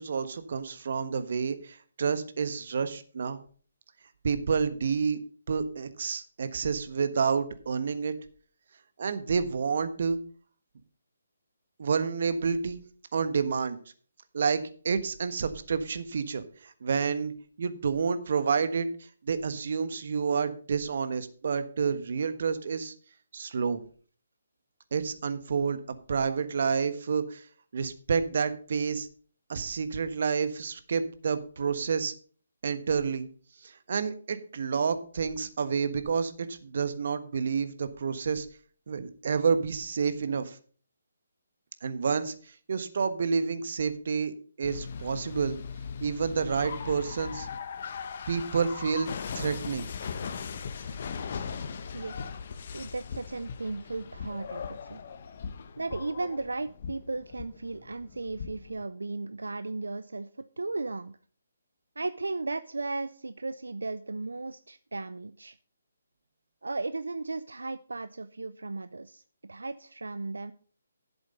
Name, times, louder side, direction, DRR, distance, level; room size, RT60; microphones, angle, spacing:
voice 1, 0.0-3.4 4.2-5.2 5.5-8.1 9.0-10.2 11.8-12.8 13.1-13.8 14.3-17.3 17.6-18.9 19.2-22.9 23.3-23.8 24.9-25.8 26.1-27.4 27.7-29.1 29.5-32.1 32.6-33.3 33.6-38.5 38.9-40.6 41.8-42.3 42.7-45.6 46.0-47.5 48.3-49.1 49.3-49.9, right 5 dB, 55° right, 11 dB, 1.4 m, -29 dB
sound 1, 44.6-58.8, left 6 dB, 50° left, 1.2 m, -39 dB
voice 2, 51.9-52.3 52.7-55.0 55.8-60.3 60.6-61.2 62.0-65.6 66.6-70.5, right 3 dB, 85° right, 13 dB, 0.5 m, -35 dB
11.0 x 7.9 x 5.4 m, 0.43 s
figure-of-eight pair, 145°, 0 cm